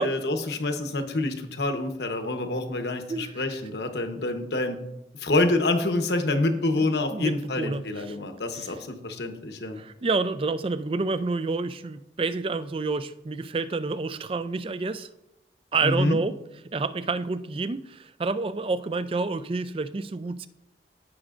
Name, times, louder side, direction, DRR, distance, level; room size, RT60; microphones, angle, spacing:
voice 1, 0.0-4.8 5.2-9.8 15.8-16.2, left 2 dB, 70° left, 6 dB, 1.0 m, -27 dB
voice 2, 3.1-3.4 6.8-8.2 8.6-8.7 9.8-15.1 15.7-16.4 16.7-20.5, right 3 dB, 30° right, 13 dB, 0.3 m, -29 dB
16.0 x 6.1 x 2.5 m, 0.85 s
head